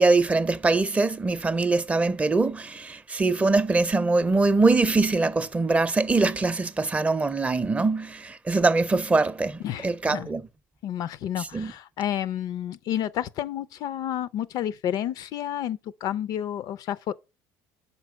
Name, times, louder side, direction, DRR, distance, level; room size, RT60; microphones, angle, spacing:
voice 1, 0.0-10.4 11.4-11.7, right 3 dB, 15° right, 0.5 m, -23 dB
voice 2, 9.6-10.3 10.8-17.1, left 11 dB, 60° left, 0.4 m, -30 dB
5.6 x 4.4 x 6.1 m
supercardioid pair, 105°, 8 cm